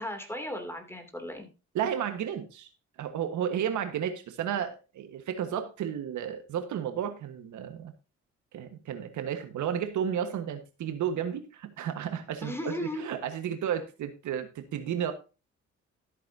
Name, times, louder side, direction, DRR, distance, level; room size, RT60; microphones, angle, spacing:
voice 1, 0.0-1.5 12.4-13.0, left 1 dB, 10° left, 5 dB, 2.8 m, -36 dB
voice 2, 1.7-2.7 3.0-7.9 8.5-15.1, right 9 dB, 75° right, 8 dB, 1.5 m, -32 dB
13.5 x 8.3 x 2.8 m, 0.31 s
cardioid pair, 90°, 30 cm